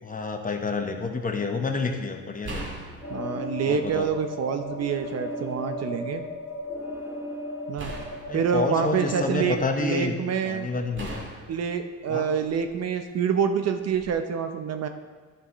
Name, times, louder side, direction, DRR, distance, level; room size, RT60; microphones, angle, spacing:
voice 1, 0.0-2.8 3.6-4.1 8.3-10.2 10.4-11.3 12.1-12.3, left 3 dB, 25° left, 4 dB, 1.0 m, -29 dB
sound 1, 0.8-0.9 2.4-4.3 4.7-5.7 7.8-9.7 10.9-12.8 13.9-14.1, right 2 dB, 40° right, 2.1 m, -41 dB
sound 2, 3.0-9.2, left 1 dB, 10° right, 2.5 m, -36 dB
voice 2, 3.1-6.2 7.7-7.9 8.3-10.7 11.5-14.9, right 7 dB, 55° right, 7 dB, 0.8 m, -27 dB
11.5 x 7.3 x 3.1 m, 1.4 s
cardioid pair, 90°, 30 cm